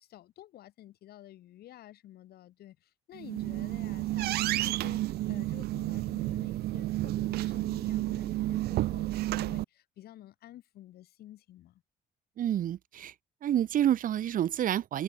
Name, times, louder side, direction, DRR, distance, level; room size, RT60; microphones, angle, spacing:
voice 1, 0.0-11.8, left 13 dB, 65° left, 2.6 m, -51 dB
sound 1, 3.1-9.6, right 16 dB, 70° right, 0.7 m, -31 dB
voice 2, 12.4-13.1 13.4-15.0, right 11 dB, 55° right, 1.2 m, -28 dB
cardioid pair, 110°, 17 cm